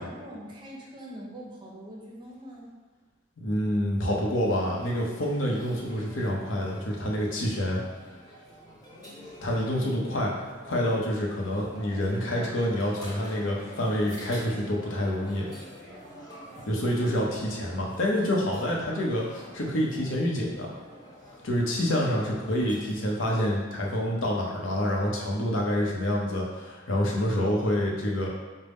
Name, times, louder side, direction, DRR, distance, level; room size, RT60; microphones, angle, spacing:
voice 1, 0.0-2.7 22.2-22.9, equal, 25° right, -3 dB, 0.6 m, -43 dB
voice 2, 3.4-7.8 9.4-15.5 16.7-20.7 21.4-28.3, equal, 75° left, -2 dB, 0.8 m, -27 dB
sound 1, 4.0-22.9, equal, 20° left, 1.0 m, -47 dB
5.1 x 2.1 x 3.5 m, 1.4 s
head